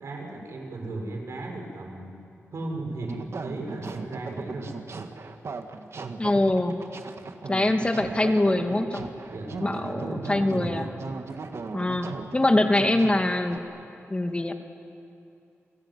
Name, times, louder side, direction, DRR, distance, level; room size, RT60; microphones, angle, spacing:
voice 1, 0.0-2.1 2.5-4.7 9.3-10.9, right 2 dB, 85° right, 1 dB, 5.7 m, -36 dB
sound 1, 3.0-13.6, right 4 dB, 70° right, 1.8 m, -38 dB
voice 2, 6.2-6.7 7.5-9.1 9.6-10.9 11.7-12.1 12.3-13.6 14.1-14.5, left 1 dB, 25° left, 5 dB, 2.1 m, -23 dB
28.5 x 18.5 x 9.7 m, 2.6 s
wide cardioid pair, 85°, 5 cm